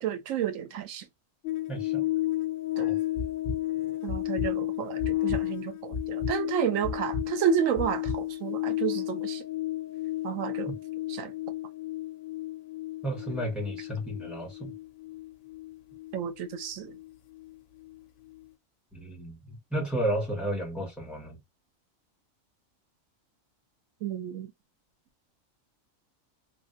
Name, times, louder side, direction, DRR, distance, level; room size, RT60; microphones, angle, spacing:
voice 1, 0.0-1.1 2.8-3.0 4.0-9.4 10.2-10.7 11.1-11.3 16.1-17.0 24.0-24.5, right 8 dB, 75° right, 1.0 m, -31 dB
singing bowl sing, 1.4-18.0 18.3-18.4, left 17 dB, 80° left, 1.0 m, -33 dB
voice 2, 1.7-2.0 2.8-3.0 13.0-14.7 18.9-21.4, right 1 dB, ahead, 1.3 m, -32 dB
sound 1, 3.2-3.6 4.1-4.5 5.0-5.4 5.9-6.3 6.8-7.3 7.8-8.2, left 3 dB, 40° left, 0.4 m, -32 dB
3.3 x 2.5 x 2.5 m
omnidirectional pair, 1.4 m